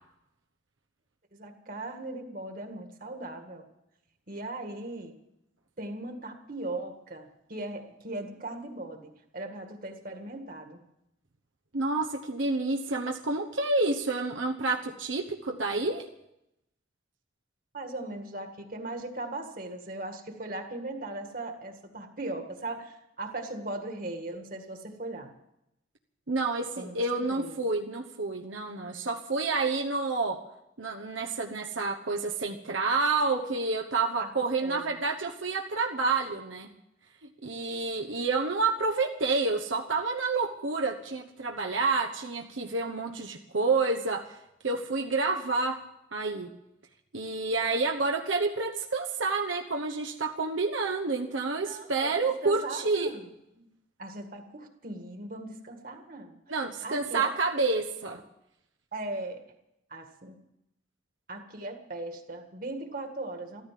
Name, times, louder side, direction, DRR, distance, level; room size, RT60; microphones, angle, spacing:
voice 1, 1.3-3.7 4.3-5.2 5.8-10.8 17.7-25.3 26.8-27.6 34.2-34.3 34.6-35.0 51.6-53.3 53.6-53.7 54.0-56.4 56.8-57.3 58.9-59.4 59.9-60.4 61.3-63.7, right 2 dB, 45° right, 5 dB, 1.9 m, -38 dB
voice 2, 11.7-16.1 26.3-30.4 30.8-36.7 37.4-44.4 44.6-45.8 46.1-46.5 47.1-53.1 56.5-58.2, right 3 dB, 80° right, 2 dB, 1.1 m, -29 dB
14.0 x 14.0 x 7.6 m, 0.84 s
head